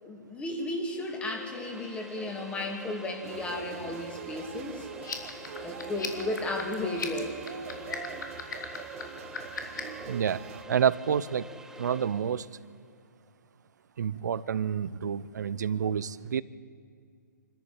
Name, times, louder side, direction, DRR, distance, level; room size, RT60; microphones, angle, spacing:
voice 1, 0.0-4.9 5.6-7.3, left 2 dB, 10° left, 2 dB, 2.8 m, -34 dB
sound 1, 1.0-12.6, equal, 5° right, 0.8 m, -46 dB
sound 2, 3.2-10.6, right 9 dB, 45° right, 1.3 m, -44 dB
sound 3, 5.0-10.0, left 5 dB, 75° left, 3.2 m, -38 dB
voice 2, 10.1-10.4 10.7-11.4 11.8-12.5 14.0-16.4, right 8 dB, 65° right, 18 dB, 0.8 m, -28 dB
26.0 x 13.5 x 9.1 m, 2.3 s
hypercardioid pair, 140°, 10 cm